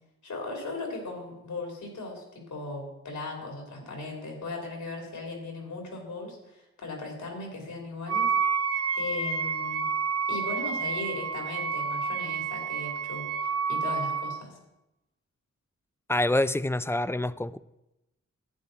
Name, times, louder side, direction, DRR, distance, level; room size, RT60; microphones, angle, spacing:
voice 1, 0.2-6.4 6.8-8.3 8.9-9.9 10.3-14.5, left 2 dB, 85° left, 1 dB, 3.0 m, -37 dB
Wind instrument woodwind instrument, 8.1-14.4, right 5 dB, 50° right, 0.7 m, -29 dB
voice 2, 16.1-17.6, left 1 dB, 10° left, 15 dB, 0.3 m, -26 dB
11.0 x 9.2 x 4.0 m, 0.92 s
cardioid pair, 65°, 29 cm